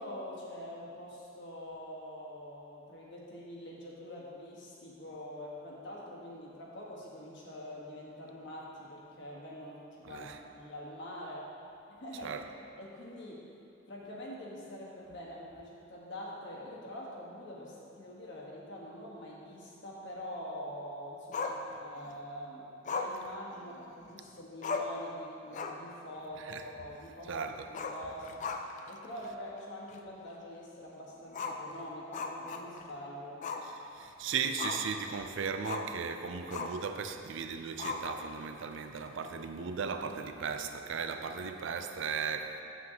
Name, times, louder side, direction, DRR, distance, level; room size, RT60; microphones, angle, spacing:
voice 1, 0.0-11.5 12.0-12.3 12.8-13.4 13.9-27.3 27.7-28.4 28.9-33.4, left 1 dB, 60° left, -4 dB, 1.3 m, -45 dB
voice 2, 10.0-10.4 12.2-12.4 26.4-26.6 27.3-27.7 33.6-42.6, right 6 dB, 65° right, 7 dB, 0.4 m, -37 dB
Growling, 21.3-22.1 22.8-24.1 24.4-24.5 24.6-25.0 25.4-25.9 26.2-26.3 27.7-28.9 29.2-29.3 29.9-30.0 31.3-32.9 33.4-33.7 34.0-35.0 35.6-35.9 36.5-36.9 37.8-38.4, left 4 dB, 40° left, 0.4 m, -38 dB
7.9 x 7.4 x 2.9 m, 2.7 s
head